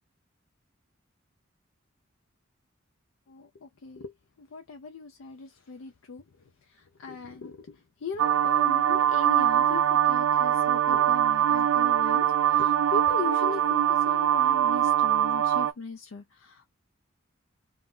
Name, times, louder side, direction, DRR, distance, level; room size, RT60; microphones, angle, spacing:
voice 1, 3.3-16.8, left 4 dB, 80° left, 0.4 m, -39 dB
sound 1, 8.2-15.7, right 10 dB, 80° right, 0.3 m, -23 dB
2.5 x 2.0 x 3.7 m
head